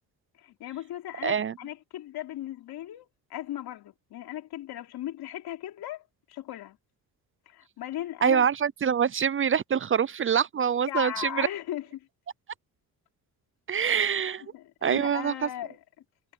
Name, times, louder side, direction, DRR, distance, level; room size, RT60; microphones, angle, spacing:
voice 1, 0.4-6.8 7.5-8.4 10.9-12.1 14.5-15.8, left 13 dB, 80° left, 3.1 m, -37 dB
voice 2, 1.2-1.5 8.2-11.5 13.7-14.4 14.8-15.5, right 7 dB, 35° right, 0.5 m, -25 dB
cardioid pair, 80°, 37 cm